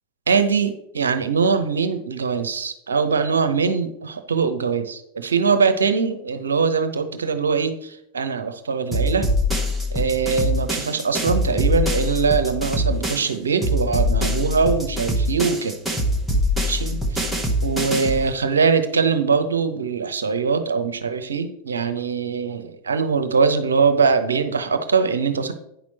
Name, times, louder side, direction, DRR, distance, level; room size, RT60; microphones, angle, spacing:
voice 1, 0.3-9.3 9.9-15.8 16.6-17.0 17.6-25.5, right 5 dB, 70° right, 9 dB, 0.9 m, -22 dB
sound 1, 8.9-13.3 13.6-18.3, equal, ahead, 1.3 m, -23 dB
9.2 x 6.1 x 4.2 m, 0.78 s
figure-of-eight pair, 90°, 0 cm